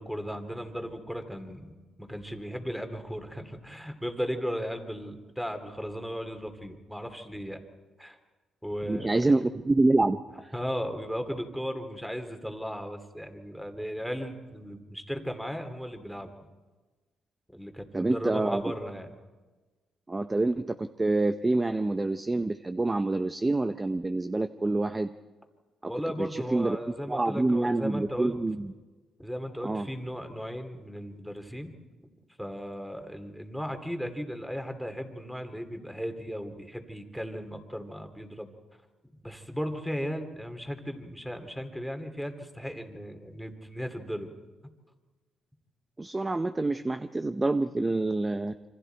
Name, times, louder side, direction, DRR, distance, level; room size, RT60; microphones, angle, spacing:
voice 1, 0.0-7.6 8.0-8.2 8.6-9.2 10.5-16.3 17.5-19.2 25.9-28.4 29.2-31.7 32.4-38.5 39.2-44.3, equal, ahead, 7 dB, 2.5 m, -36 dB
voice 2, 8.9-10.5 17.9-18.6 20.1-25.1 25.8-25.9 26.2-26.8 27.1-28.7 29.6-29.9 46.0-48.5, right 2 dB, 20° right, 10 dB, 0.6 m, -27 dB
27.0 x 25.0 x 4.5 m, 1.3 s
cardioid pair, 90°, 0 cm